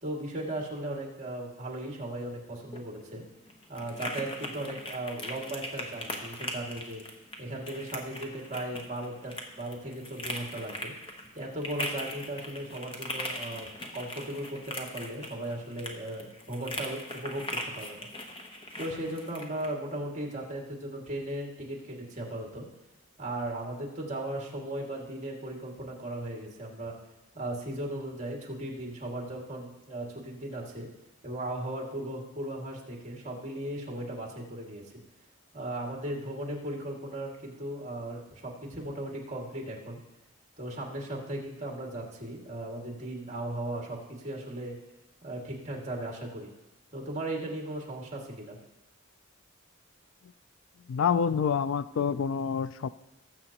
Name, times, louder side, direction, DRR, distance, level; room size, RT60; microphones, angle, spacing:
voice 1, 0.0-3.2 3.7-7.0 7.4-10.9 11.3-18.1 18.8-22.7 23.2-27.0 27.3-30.9 31.2-34.8 35.5-40.0 40.6-44.8 45.2-46.5 46.9-48.6, right 1 dB, 35° right, -1 dB, 2.2 m, -37 dB
sound 1, 2.6-19.7, left 1 dB, 25° left, 1.0 m, -40 dB
voice 2, 50.9-52.9, left 6 dB, 65° left, 15 dB, 0.3 m, -27 dB
19.0 x 7.7 x 2.9 m, 1.1 s
head